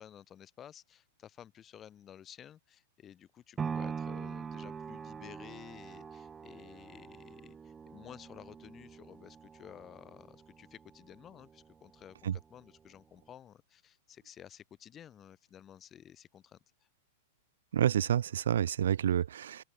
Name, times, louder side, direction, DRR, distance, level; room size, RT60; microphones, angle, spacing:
voice 1, 0.0-16.6, left 10 dB, 20° left, 7.6 m, -53 dB
sound 1, 3.6-11.7 12.2-12.3, right 6 dB, 15° right, 3.8 m, -43 dB
voice 2, 17.7-19.6, right 10 dB, 85° right, 1.2 m, -29 dB
open air
supercardioid pair, 155°, 0 cm